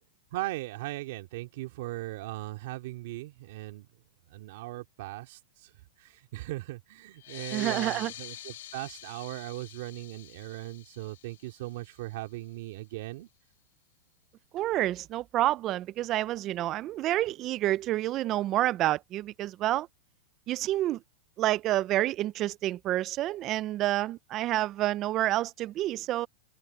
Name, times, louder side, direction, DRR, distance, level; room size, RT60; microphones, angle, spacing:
voice 1, 0.3-3.9 4.3-5.7 6.0-13.3, right 18 dB, 55° right, 2.9 m, -38 dB
sound 1, 7.1-12.3, left 14 dB, 70° left, 2.5 m, -45 dB
voice 2, 7.5-8.1 14.5-19.9 20.5-21.0 21.4-26.3, right 14 dB, 30° right, 0.5 m, -28 dB
open air
supercardioid pair, 155°, 0 cm